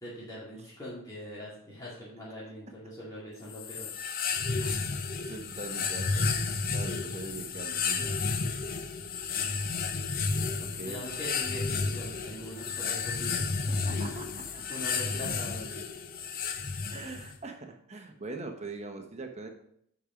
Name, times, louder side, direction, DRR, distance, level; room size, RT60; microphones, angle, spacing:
voice 1, 0.0-3.9 9.4-10.0 10.7-13.9 14.4-15.8, equal, 15° left, -9 dB, 2.3 m, -42 dB
sound 1, 3.5-17.4, left 4 dB, 40° left, 0.6 m, -32 dB
voice 2, 5.2-6.3 6.7-8.1 9.9-10.0 10.6-11.0 12.3-12.4 13.7-14.6 16.9-19.5, right 3 dB, 30° right, 4 dB, 1.0 m, -42 dB
8.7 x 5.1 x 5.1 m, 0.69 s
head